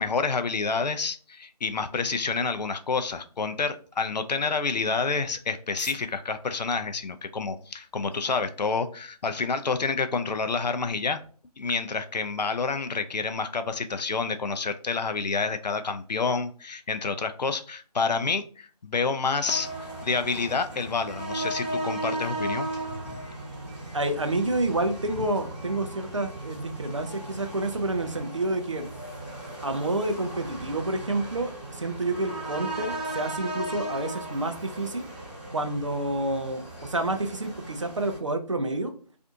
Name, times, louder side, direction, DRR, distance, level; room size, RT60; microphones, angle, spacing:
voice 1, 0.0-11.2 11.6-19.7 20.0-23.2 25.2-25.3, left 4 dB, 80° left, 9 dB, 0.4 m, -28 dB
sound 1, 2.9-10.0, equal, 5° left, 0.9 m, -54 dB
sound 2, 19.4-38.2, right 1 dB, 15° right, 1.0 m, -36 dB
voice 2, 23.9-28.9 29.6-35.1 35.5-38.9, right 2 dB, 50° right, 6 dB, 0.4 m, -29 dB
2.5 x 2.4 x 2.6 m, 0.43 s
figure-of-eight pair, 165°, 21 cm